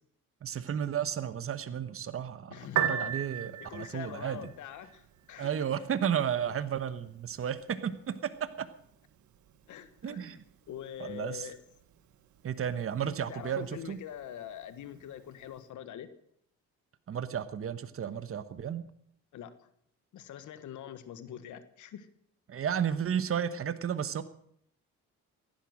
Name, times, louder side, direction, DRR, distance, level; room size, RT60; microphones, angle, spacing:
voice 1, 0.4-4.5 5.4-8.7 10.0-10.4 11.0-11.5 12.4-14.0 17.1-18.8 22.5-24.2, right 8 dB, 45° right, 1.2 m, -33 dB
voice 2, 2.5-3.1 3.6-5.5 9.7-10.4 10.7-11.6 13.0-16.1 19.3-19.7 20.1-22.1, left 10 dB, 75° left, 1.4 m, -44 dB
Piano, 2.6-15.6, right 10 dB, 70° right, 1.6 m, -41 dB
16.0 x 11.5 x 6.4 m
cardioid pair, 90°, 30 cm